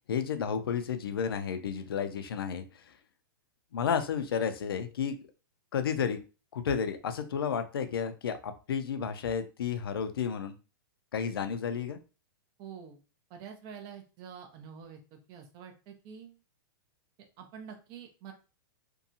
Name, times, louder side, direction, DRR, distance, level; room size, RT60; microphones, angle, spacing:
voice 1, 0.1-2.6 3.7-5.2 5.7-6.2 6.5-10.5 11.1-12.0, left 7 dB, 90° left, 8 dB, 0.5 m, -32 dB
voice 2, 12.6-13.0 13.3-16.4 17.4-18.3, right 7 dB, 35° right, 4 dB, 0.7 m, -47 dB
2.7 x 2.3 x 2.7 m, 0.33 s
hypercardioid pair, 135°, 12 cm